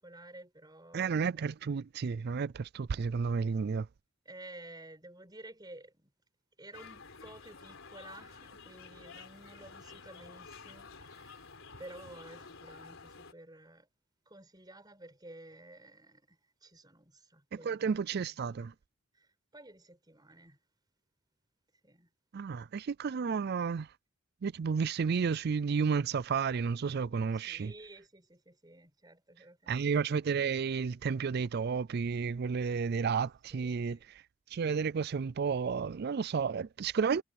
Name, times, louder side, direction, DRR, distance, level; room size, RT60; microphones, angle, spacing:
voice 1, 0.0-1.4 4.3-6.1 6.6-11.5 11.8-13.9 14.3-18.0 18.2-18.8 19.1-20.6 21.8-22.1 27.3-30.2 33.5-34.1, right 1 dB, 20° right, 5.4 m, -53 dB
voice 2, 0.9-3.9 17.6-18.7 22.3-23.9 24.4-27.7 29.7-34.0 34.5-37.2, right 5 dB, 50° right, 0.4 m, -32 dB
sound 1, 6.7-13.3, left 4 dB, 65° left, 4.3 m, -51 dB
head